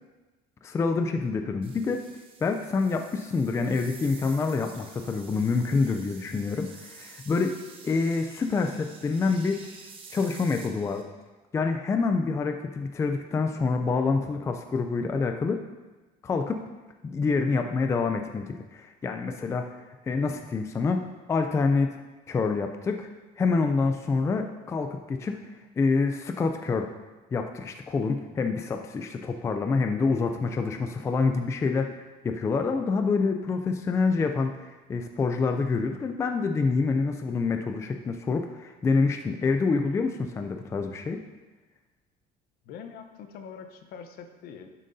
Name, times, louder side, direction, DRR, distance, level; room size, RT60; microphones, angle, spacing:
voice 1, 0.6-2.1 2.4-7.6 7.8-9.6 10.1-11.0 11.5-15.6 16.2-16.6 17.0-19.8 20.0-21.0 21.3-22.0 22.3-23.1 23.4-25.4 25.8-26.9 27.3-32.0 32.2-41.2, left 4 dB, 15° left, 6 dB, 0.4 m, -27 dB
sound 1, 1.6-11.0, right 4 dB, 30° right, 1.0 m, -49 dB
voice 2, 42.6-44.7, left 6 dB, 65° left, 7 dB, 0.8 m, -44 dB
12.0 x 7.4 x 2.7 m, 1.2 s
cardioid pair, 165°, 17 cm